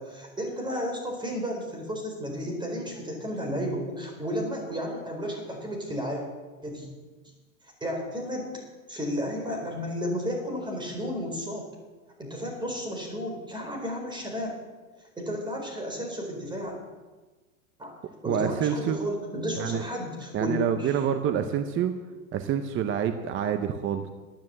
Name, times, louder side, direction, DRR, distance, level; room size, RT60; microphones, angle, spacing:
voice 1, 0.0-6.2 6.6-6.9 7.8-8.5 8.9-11.7 12.2-14.6 15.2-16.7 17.8-17.9 18.2-21.0, equal, 10° right, 0 dB, 4.3 m, -32 dB
voice 2, 18.3-19.0 19.6-19.8 20.3-21.9 22.3-24.1, right 8 dB, 25° right, 9 dB, 0.8 m, -27 dB
12.0 x 10.5 x 7.7 m, 1.3 s
hypercardioid pair, 120°, 44 cm